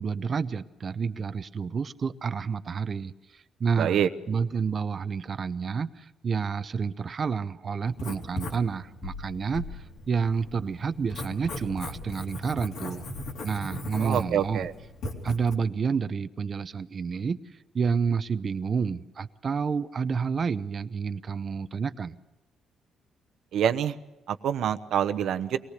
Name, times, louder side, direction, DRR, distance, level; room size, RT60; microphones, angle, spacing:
voice 1, 0.0-4.0 4.3-13.1 13.4-14.7 15.2-17.4 17.7-22.2, right 5 dB, 45° right, 11 dB, 0.7 m, -29 dB
voice 2, 3.8-4.1 14.0-14.7 23.5-23.9 24.3-25.6, right 9 dB, 75° right, 9 dB, 1.0 m, -26 dB
Writing, 7.9-15.5, left 2 dB, 80° left, 3.9 m, -38 dB
23.5 x 18.5 x 6.7 m, 1.1 s
cardioid pair, 90°, 0 cm